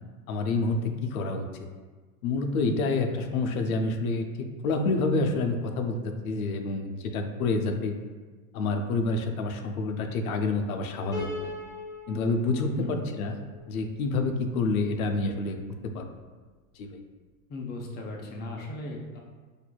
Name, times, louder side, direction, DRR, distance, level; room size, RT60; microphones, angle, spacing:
voice 1, 0.3-1.5 2.2-4.3 4.6-7.9 8.5-11.5 12.1-13.4 13.7-15.6 15.9-16.1 16.8-17.0, left 3 dB, 90° left, 5 dB, 0.6 m, -28 dB
Piano, 11.1-14.3, left 2 dB, 5° left, 0.9 m, -40 dB
voice 2, 17.5-19.2, left 2 dB, 25° left, 0 dB, 0.5 m, -37 dB
4.4 x 2.6 x 2.2 m, 1.4 s
supercardioid pair, 125°, 41 cm